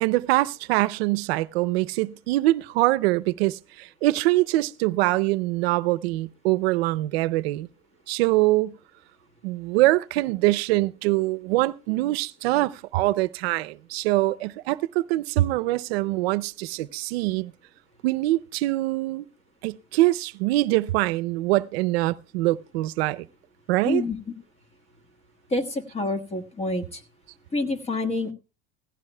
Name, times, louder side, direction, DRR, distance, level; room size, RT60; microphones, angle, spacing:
voice 1, 0.0-7.7 8.1-8.7 9.4-17.5 18.0-19.2 19.6-23.2 23.7-24.0, right 18 dB, 85° right, 0.6 m, -24 dB
voice 2, 23.8-24.2 25.5-27.0 27.5-28.3, left 2 dB, 20° left, 1.5 m, -27 dB
16.0 x 15.5 x 2.2 m
supercardioid pair, 140°, 30 cm